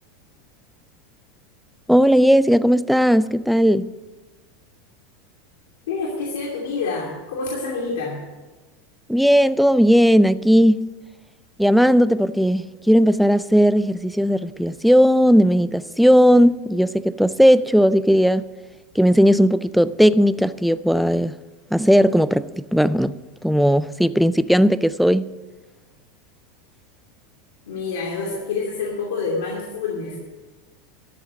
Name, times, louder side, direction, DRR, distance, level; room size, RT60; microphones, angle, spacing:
voice 1, 1.9-3.9 9.1-10.9 11.6-18.5 19.0-21.3 21.7-25.3, equal, ahead, 0.3 m, -17 dB
voice 2, 5.9-8.2 27.7-30.2, left 4 dB, 85° left, 2.7 m, -27 dB
12.5 x 7.4 x 8.3 m
supercardioid pair, 155°, 0 cm